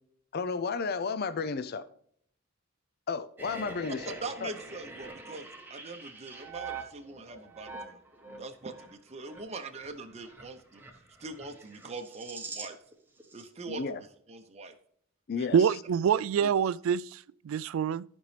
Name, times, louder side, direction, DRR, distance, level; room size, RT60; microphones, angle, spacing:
voice 1, 0.3-1.8 3.1-4.5 13.7-14.0 15.3-15.6, left 5 dB, 50° left, 0.5 m, -33 dB
sound 1, 3.4-12.9 13.2-13.5, right 3 dB, 10° right, 1.1 m, -45 dB
voice 2, 4.2-8.0 8.4-10.8 11.2-12.8 13.3-14.7 15.4-15.6 16.4-16.5, right 3 dB, 30° right, 0.8 m, -42 dB
voice 3, 15.5-18.0, right 7 dB, 75° right, 0.3 m, -26 dB
13.5 x 5.3 x 3.3 m
head